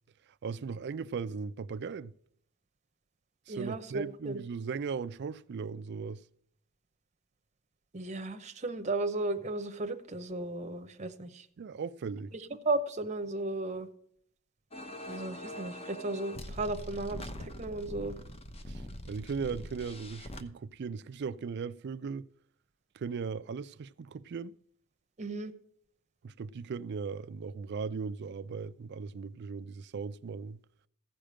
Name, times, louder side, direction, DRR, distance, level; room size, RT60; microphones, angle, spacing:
voice 1, 0.4-2.1 3.5-6.2 11.6-12.3 18.7-22.3 22.9-24.6 26.2-30.6, right 5 dB, 55° right, 0.4 m, -38 dB
voice 2, 3.5-4.4 7.9-11.5 12.6-13.9 15.1-18.2 25.2-25.5, right 2 dB, 35° right, 0.8 m, -35 dB
sound 1, 14.7-20.4, left 1 dB, 30° left, 0.9 m, -43 dB
15.0 x 5.1 x 7.5 m
head